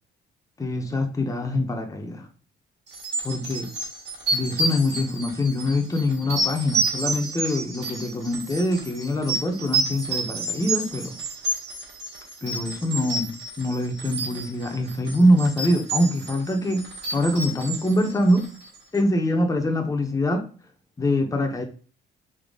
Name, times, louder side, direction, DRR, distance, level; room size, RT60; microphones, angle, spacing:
voice 1, 0.6-2.3 3.2-3.7 4.3-11.2 12.4-16.8 17.1-18.4 18.9-20.4 21.0-21.6, left 1 dB, 15° left, 3 dB, 0.8 m, -24 dB
sound 1, 2.9-18.8, right 2 dB, 60° right, 1.9 m, -30 dB
4.0 x 2.8 x 3.5 m, 0.38 s
cardioid pair, 90°, 20 cm